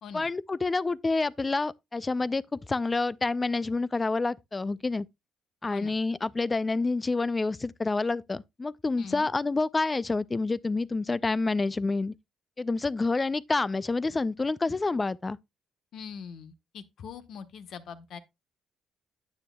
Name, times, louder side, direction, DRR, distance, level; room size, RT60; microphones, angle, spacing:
voice 1, 0.1-5.1 5.6-12.1 12.6-15.4, left 3 dB, 20° left, 0.4 m, -28 dB
voice 2, 9.0-9.3 15.9-18.2, left 6 dB, 60° left, 1.1 m, -42 dB
9.6 x 9.3 x 2.2 m
cardioid pair, 145°, 0 cm